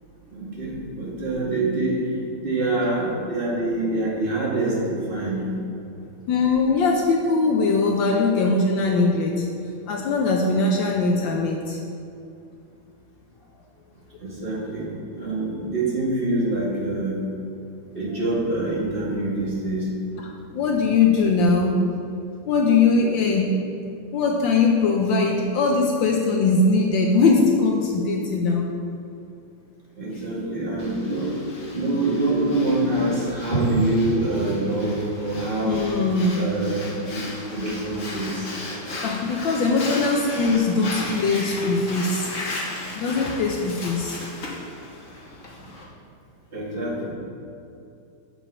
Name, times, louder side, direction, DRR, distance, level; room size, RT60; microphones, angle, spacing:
voice 1, 0.3-5.5 14.2-17.2 17.9-20.3 30.0-31.4 31.7-35.8 36.3-37.2 37.5-38.5 46.5-47.1, right 2 dB, 25° right, -6 dB, 1.6 m, -25 dB
voice 2, 6.3-9.4 9.9-11.8 20.5-21.9 22.5-23.6 24.1-28.6 35.6-36.5 39.0-42.3 42.9-44.2, left 3 dB, 75° left, 1 dB, 1.3 m, -21 dB
Breathing, 30.8-45.8, left 2 dB, 45° left, 1.3 m, -36 dB
7.1 x 7.0 x 4.2 m, 2.6 s
omnidirectional pair, 2.3 m